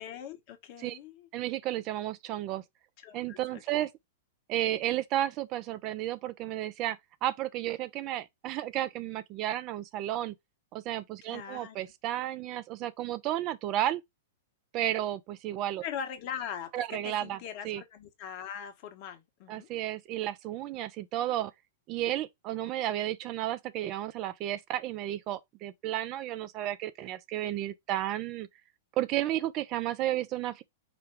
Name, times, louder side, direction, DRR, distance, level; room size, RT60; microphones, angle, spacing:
voice 1, 0.0-1.3 3.0-3.9 11.3-11.8 15.8-19.7, left 8 dB, 50° left, 1.3 m, -41 dB
voice 2, 1.3-2.6 3.1-3.9 4.5-10.3 10.7-14.0 14.7-15.8 16.7-17.4 17.6-17.8 19.5-21.5 21.9-28.5 29.0-30.6, right 13 dB, 40° right, 0.5 m, -32 dB
5.1 x 2.3 x 4.5 m
hypercardioid pair, 110°, 0 cm